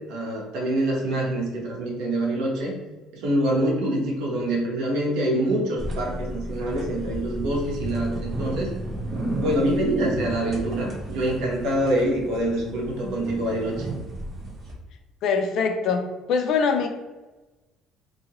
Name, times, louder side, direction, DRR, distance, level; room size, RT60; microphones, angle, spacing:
voice 1, 0.1-2.7 3.1-8.7 9.3-13.9, right 1 dB, 70° right, -1 dB, 1.0 m, -25 dB
sound 1, 5.8-14.7, right 1 dB, 30° right, 0.7 m, -33 dB
voice 2, 15.2-16.0 16.3-16.9, left 5 dB, 55° left, 5 dB, 0.4 m, -22 dB
2.7 x 2.6 x 2.9 m, 1.1 s
cardioid pair, 150°, 0 cm